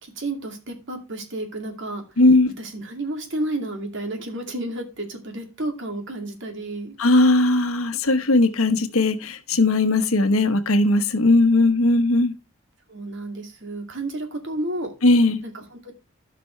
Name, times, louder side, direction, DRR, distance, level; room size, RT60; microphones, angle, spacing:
voice 1, 0.0-2.0 2.6-6.9 12.9-14.9 15.4-15.9, right 1 dB, 55° right, 2.4 m, -31 dB
voice 2, 2.2-2.5 7.0-12.3 15.0-15.4, left 2 dB, 70° left, 1.1 m, -18 dB
13.5 x 6.1 x 3.2 m
head